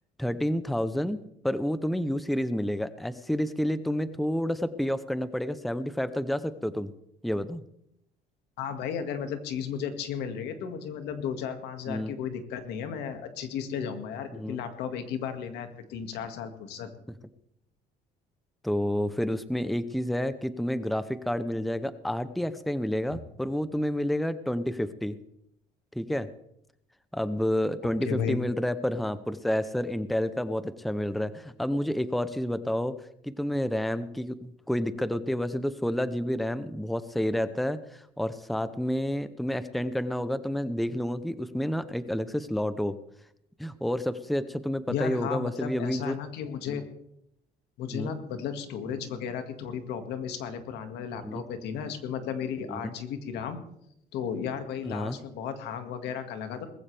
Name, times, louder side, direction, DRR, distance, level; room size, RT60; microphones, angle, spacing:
voice 1, 0.2-6.9 7.2-7.6 11.9-12.1 14.3-14.6 18.6-25.2 25.9-26.3 27.1-33.0 33.2-43.0 43.6-46.1 46.7-46.8 47.9-48.1 51.2-51.4 52.7-52.9 54.9-55.2, equal, ahead, 13 dB, 0.7 m, -29 dB
voice 2, 8.6-16.9 23.1-23.2 28.1-28.4 44.9-46.8 47.8-53.6 54.1-56.7, left 7 dB, 80° left, 7 dB, 2.0 m, -34 dB
20.0 x 15.0 x 3.4 m, 0.76 s
cardioid pair, 110°, 17 cm